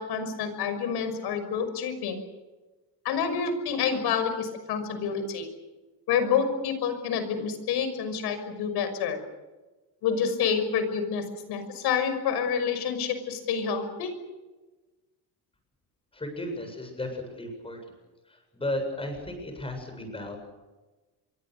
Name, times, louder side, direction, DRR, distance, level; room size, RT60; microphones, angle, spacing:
voice 1, 0.0-2.2 3.0-5.5 6.1-9.2 10.0-14.1, left 6 dB, 80° left, 9 dB, 6.0 m, -28 dB
voice 2, 16.1-17.8 18.3-20.4, left 1 dB, 15° left, 5 dB, 7.7 m, -34 dB
26.5 x 23.5 x 6.8 m, 1.2 s
cardioid pair, 150°, 39 cm